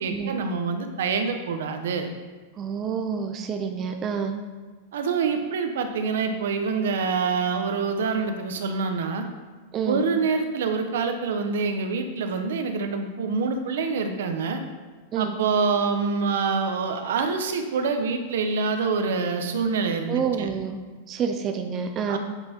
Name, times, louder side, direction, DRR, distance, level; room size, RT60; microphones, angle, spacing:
voice 1, 0.0-2.1 4.9-9.3 9.8-14.6 15.1-20.5 22.1-22.2, right 5 dB, 70° right, 6 dB, 1.1 m, -26 dB
voice 2, 2.6-4.4 9.7-10.0 15.1-15.3 20.1-20.8 21.1-22.2, right 6 dB, 20° right, 5 dB, 0.5 m, -28 dB
9.5 x 5.9 x 4.5 m, 1.4 s
supercardioid pair, 180°, 0 cm